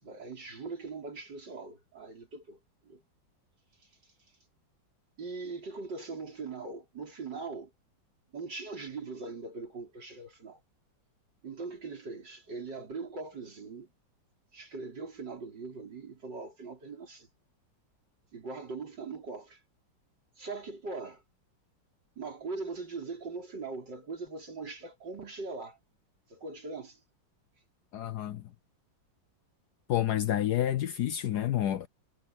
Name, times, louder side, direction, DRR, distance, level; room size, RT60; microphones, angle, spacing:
voice 1, 0.0-2.6 2.9-3.0 5.2-7.7 8.3-10.6 11.4-13.9 14.5-17.3 18.3-19.6 20.4-21.2 22.2-25.8 26.3-27.0, right 4 dB, 60° right, 5.4 m, -41 dB
voice 2, 27.9-28.4 29.9-31.9, left 12 dB, 65° left, 1.1 m, -29 dB
omnidirectional pair, 2.1 m